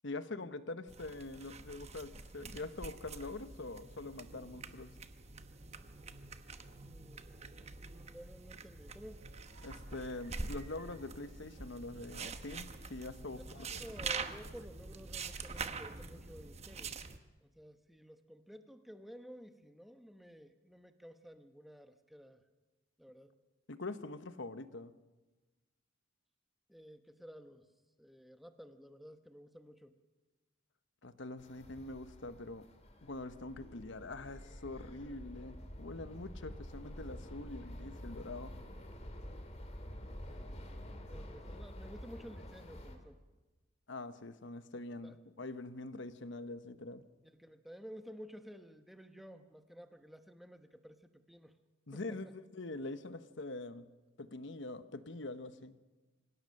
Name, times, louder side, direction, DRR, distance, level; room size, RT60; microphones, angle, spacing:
voice 1, 0.0-5.0 9.6-13.8 23.7-24.9 31.0-32.7 33.0-38.5 40.3-40.4 43.9-47.0 51.9-53.9 54.2-55.8, left 2 dB, 60° left, 12 dB, 1.0 m, -44 dB
sound 1, 0.9-17.2, right 4 dB, 30° right, 1.0 m, -45 dB
voice 2, 6.8-7.3 7.9-9.3 13.5-17.0 17.4-22.4 23.0-23.3 26.7-27.7 28.0-30.0 40.3-40.7 41.1-43.2 45.0-45.2 47.2-51.5 51.9-52.3, equal, ahead, 8 dB, 1.0 m, -53 dB
sound 2, 9.2-16.3, right 1 dB, 75° right, 2.9 m, -62 dB
sound 3, 31.4-43.0, equal, 30° left, 2.4 m, -48 dB
25.5 x 16.5 x 6.5 m, 1.2 s
head